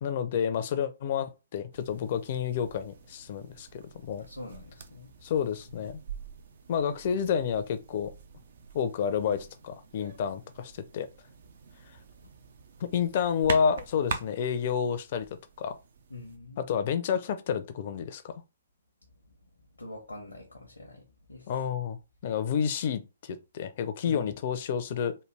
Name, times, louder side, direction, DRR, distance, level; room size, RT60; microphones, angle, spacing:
voice 1, 0.0-4.3 5.2-6.0 6.7-8.1 8.7-11.1 11.9-12.0 12.8-15.3 15.6-15.8 16.6-18.4 21.5-25.2, left 7 dB, 45° left, 0.5 m, -30 dB
sound 1, 1.7-16.4, right 5 dB, 60° right, 0.5 m, -44 dB
voice 2, 4.2-5.1 5.7-5.9 16.1-16.6 19.8-21.5 24.0-24.3, left 2 dB, 80° left, 0.7 m, -44 dB
3.2 x 2.2 x 3.3 m
figure-of-eight pair, 125°, 0 cm